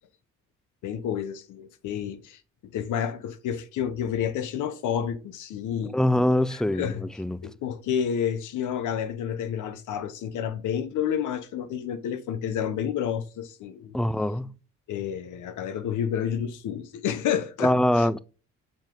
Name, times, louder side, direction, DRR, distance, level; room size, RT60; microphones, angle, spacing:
voice 1, 0.8-2.4 2.7-7.1 7.4-13.9 14.9-18.1, left 8 dB, 80° left, 0.9 m, -30 dB
voice 2, 5.9-7.4 13.9-14.5 17.6-18.2, left 1 dB, ahead, 0.3 m, -23 dB
7.3 x 4.5 x 3.7 m
cardioid pair, 90°, 30 cm